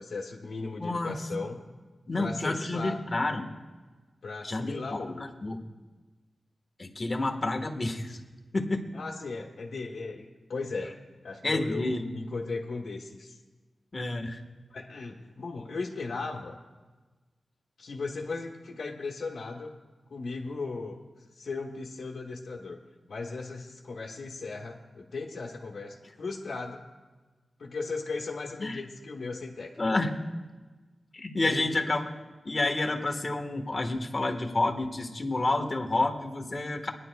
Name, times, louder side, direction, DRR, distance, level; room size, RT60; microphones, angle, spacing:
voice 1, 0.0-1.6 2.2-3.0 4.2-5.4 8.9-10.9 11.2-13.4 14.7-16.6 17.8-19.7 20.1-21.0 21.3-22.8 23.1-26.9 27.6-29.8 31.4-31.8, left 3 dB, 80° left, -2 dB, 1.2 m, -37 dB
voice 2, 0.8-1.2 2.1-3.5 4.4-5.6 6.8-8.2 8.5-8.9 11.4-12.0 13.9-14.4 28.6-28.8 29.8-30.2 31.1-32.0 32.4-36.9, left 2 dB, 40° left, 2 dB, 1.4 m, -29 dB
23.0 x 10.5 x 2.3 m, 1.3 s
wide cardioid pair, 80°, 0 cm